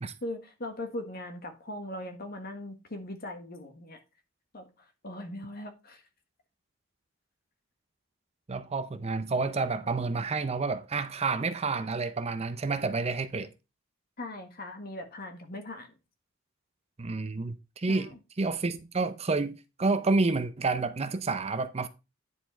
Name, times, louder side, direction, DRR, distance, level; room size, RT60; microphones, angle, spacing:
voice 1, 0.2-4.0 4.5-4.7 5.0-6.0 14.2-15.9 17.9-18.2, left 1 dB, 50° left, 1.5 m, -39 dB
voice 2, 8.5-13.5 17.0-18.1 18.4-21.9, right 3 dB, 30° right, 0.6 m, -29 dB
10.0 x 4.7 x 4.3 m
head